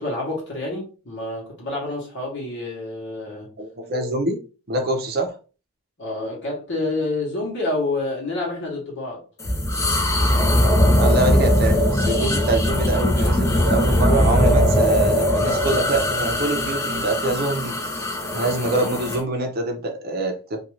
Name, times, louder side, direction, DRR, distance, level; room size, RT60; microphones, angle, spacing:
voice 1, 0.0-3.5 6.0-9.2, left 2 dB, 55° left, 1.0 m, -28 dB
voice 2, 3.6-4.4 4.7-5.3 11.0-17.7 18.3-20.6, right 2 dB, 45° right, 0.6 m, -25 dB
sound 1, 9.4-19.2, left 1 dB, 15° left, 0.4 m, -20 dB
2.6 x 2.3 x 3.0 m
head